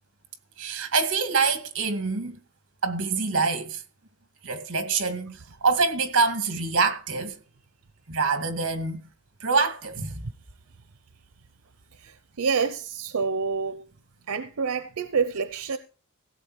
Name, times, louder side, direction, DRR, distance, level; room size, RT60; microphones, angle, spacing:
voice 1, 0.6-2.4 2.8-3.8 4.4-7.4 8.1-9.0 9.4-10.2, right 4 dB, 55° right, 2.1 m, -25 dB
voice 2, 12.0-13.8 14.3-15.8, right 5 dB, 85° right, 0.7 m, -27 dB
16.5 x 7.9 x 4.7 m
head